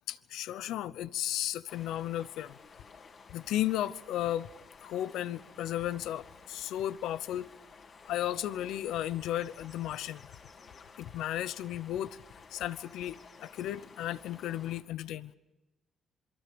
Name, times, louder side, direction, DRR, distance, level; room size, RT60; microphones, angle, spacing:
voice 1, 0.1-2.6 3.3-4.5 4.8-7.5 8.1-10.4 11.0-12.2 12.5-15.3, left 12 dB, 85° left, 16 dB, 0.7 m, -34 dB
sound 1, 1.7-14.8, left 5 dB, 50° left, 3.7 m, -54 dB
27.0 x 23.5 x 5.2 m, 1.0 s
cardioid pair, 90°, 0 cm